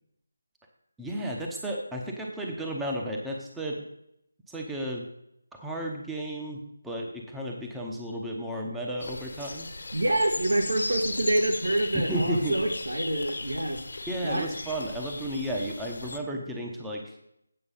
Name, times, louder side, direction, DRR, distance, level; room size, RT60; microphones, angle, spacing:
voice 1, 1.0-3.8 4.5-5.1 5.5-9.7 11.9-12.6 14.1-17.2, right 1 dB, 5° right, -1 dB, 0.8 m, -33 dB
sound 1, 9.0-16.2, left 2 dB, 65° left, 1.4 m, -37 dB
voice 2, 9.9-14.5, right 1 dB, 80° right, 2 dB, 2.0 m, -27 dB
8.8 x 6.2 x 5.4 m, 0.76 s
figure-of-eight pair, 160°, 0 cm